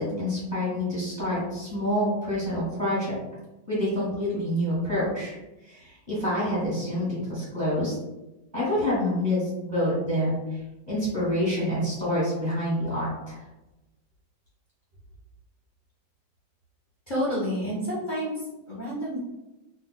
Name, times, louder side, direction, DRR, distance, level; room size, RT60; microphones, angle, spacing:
voice 1, 0.0-3.2 3.7-5.3 5.6-8.0 8.5-10.6 10.9-13.4, left 1 dB, 30° right, -10 dB, 1.5 m, -27 dB
voice 2, 17.1-19.2, equal, 40° left, -9 dB, 0.8 m, -29 dB
4.3 x 2.7 x 2.2 m, 1.0 s
omnidirectional pair, 1.8 m